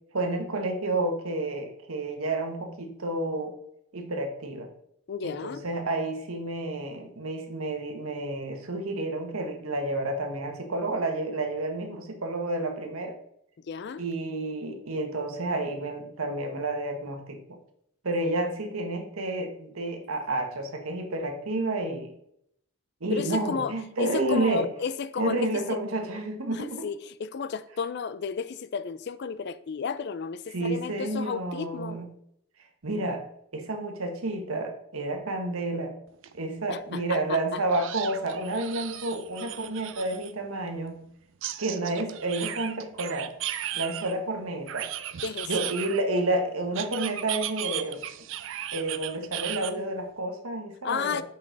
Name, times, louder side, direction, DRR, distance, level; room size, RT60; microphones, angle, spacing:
voice 1, 0.1-3.5 3.9-4.7 5.2-13.2 14.0-17.4 18.0-22.1 23.0-24.7 25.2-26.9 30.5-32.1 32.8-33.2 33.5-35.9 36.3-41.0 41.6-43.3 43.7-44.9 45.4-48.0 48.7-51.2, right 2 dB, 70° right, 1.2 m, -30 dB
voice 2, 5.1-5.6 13.6-14.0 23.1-25.8 26.5-32.0 36.7-37.6 45.2-45.7 50.8-51.2, left 6 dB, 50° left, 0.3 m, -33 dB
rat noises, 36.2-36.3 36.7-36.8 37.7-40.3 41.4-44.1 44.7-46.2 46.7-49.7, right 12 dB, 55° right, 0.4 m, -36 dB
6.2 x 5.4 x 3.9 m
head